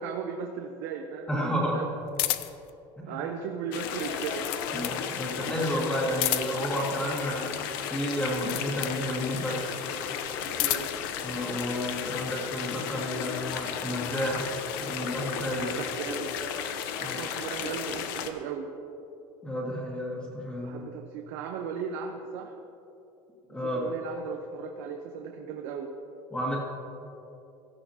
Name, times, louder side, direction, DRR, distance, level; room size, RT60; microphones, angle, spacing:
voice 1, 0.0-1.9 3.1-4.6 10.5-10.9 15.6-16.3 16.7-18.7 20.6-22.5 23.5-25.9, right 7 dB, 70° right, 2 dB, 0.9 m, -37 dB
voice 2, 1.3-1.8 3.0-3.2 4.7-7.4 7.9-9.7 11.2-14.5 14.8-15.8 17.0-17.2 19.4-20.8 23.5-23.8 26.3-26.6, equal, 10° left, -4 dB, 2.2 m, -31 dB
sound 1, 2.1-2.7 4.0-5.0 6.1-6.7 8.2-9.0 10.3-11.0, left 15 dB, 60° left, 0.5 m, -31 dB
sound 2, 3.7-18.3, left 8 dB, 85° left, 0.9 m, -34 dB
17.0 x 13.0 x 2.9 m, 2.9 s
cardioid pair, 180°, 11 cm